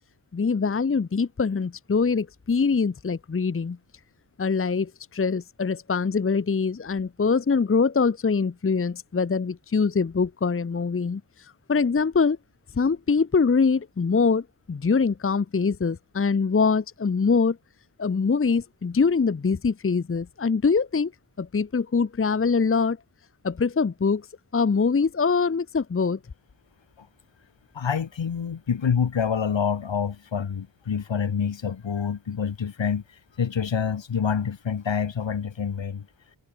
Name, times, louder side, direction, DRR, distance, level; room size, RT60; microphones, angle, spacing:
voice 1, 0.3-3.8 4.4-12.4 12.7-17.6 18.0-21.1 21.4-23.0 23.4-24.3 24.5-26.2, left 5 dB, 30° left, 0.9 m, -23 dB
voice 2, 27.7-33.0 33.4-36.1, left 7 dB, 70° left, 3.1 m, -27 dB
wide cardioid pair, 150°, 46 cm